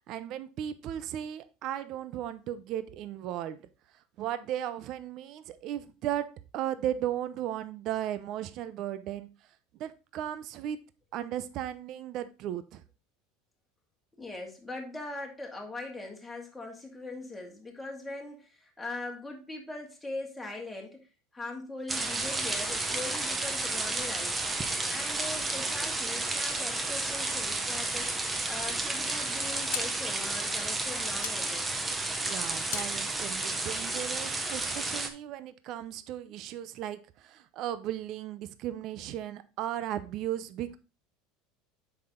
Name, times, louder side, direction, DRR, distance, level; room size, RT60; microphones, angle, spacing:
voice 1, 0.1-3.6 4.2-6.3 6.5-9.3 9.8-10.8 11.1-12.8 32.2-40.8, right 11 dB, 50° right, 0.7 m, -36 dB
voice 2, 14.2-21.1 21.3-24.3 24.9-28.1 28.5-31.7, left 2 dB, 5° left, 2.3 m, -41 dB
sound 1, 21.9-35.1, right 2 dB, 15° right, 1.0 m, -32 dB
sound 2, 29.4-34.3, left 15 dB, 90° left, 0.4 m, -42 dB
7.6 x 5.9 x 3.7 m
supercardioid pair, 125°, 0 cm